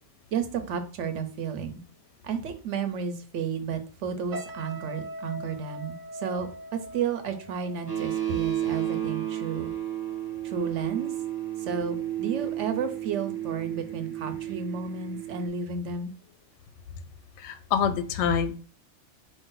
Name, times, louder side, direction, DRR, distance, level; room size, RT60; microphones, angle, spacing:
voice 1, 0.3-1.8 2.2-9.7 10.4-11.1 11.6-16.1, right 6 dB, 65° right, 8 dB, 1.0 m, -32 dB
sound 1, 4.3-9.6 9.9-10.2, right 1 dB, 90° right, 1.2 m, -42 dB
sound 2, 7.9-15.5, right 12 dB, 20° right, 0.8 m, -32 dB
voice 2, 17.4-18.6, left 7 dB, 65° left, 10 dB, 0.8 m, -26 dB
4.7 x 2.6 x 3.8 m, 0.40 s
omnidirectional pair, 1.4 m